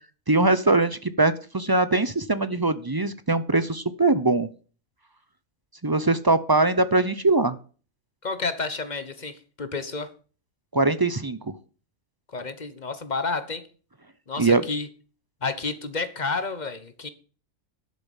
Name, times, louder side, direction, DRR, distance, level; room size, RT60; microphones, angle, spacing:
voice 1, 0.3-4.5 5.8-7.6 10.7-11.5 14.4-14.6, right 2 dB, 25° right, 0.4 m, -22 dB
voice 2, 8.2-10.1 12.3-13.7 14.3-14.9 15.4-17.1, left 4 dB, 35° left, 1.2 m, -30 dB
11.5 x 6.9 x 7.3 m
omnidirectional pair, 1.5 m